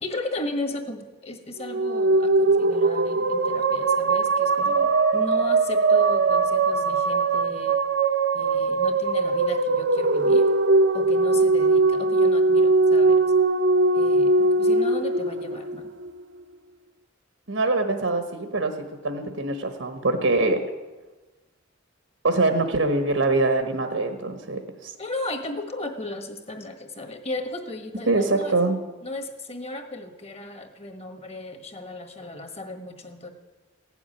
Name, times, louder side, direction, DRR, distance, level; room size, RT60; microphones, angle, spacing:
voice 1, 0.0-7.8 8.3-10.5 10.9-13.2 13.9-15.9 25.0-28.6 29.0-33.3, left 2 dB, 30° left, 6 dB, 1.5 m, -35 dB
sound 1, 1.6-16.1, right 3 dB, 65° right, 0.7 m, -21 dB
voice 2, 17.5-20.6 22.2-25.0 28.1-28.8, right 2 dB, 80° right, 7 dB, 1.2 m, -24 dB
16.0 x 7.3 x 9.8 m, 1.2 s
head